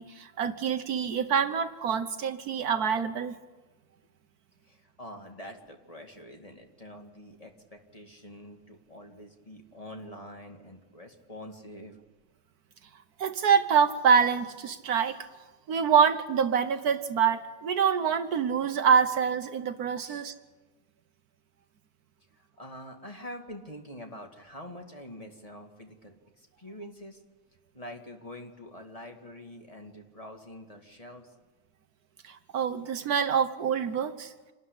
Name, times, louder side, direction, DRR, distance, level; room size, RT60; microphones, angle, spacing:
voice 1, 0.0-3.3 13.2-15.3 15.7-20.3 32.2-34.3, right 7 dB, 70° right, 10 dB, 1.4 m, -26 dB
voice 2, 4.7-12.0 20.0-20.2 22.4-27.2 27.7-31.3, left 1 dB, 20° left, 3 dB, 2.1 m, -45 dB
27.0 x 13.0 x 10.0 m, 1.2 s
omnidirectional pair, 1.8 m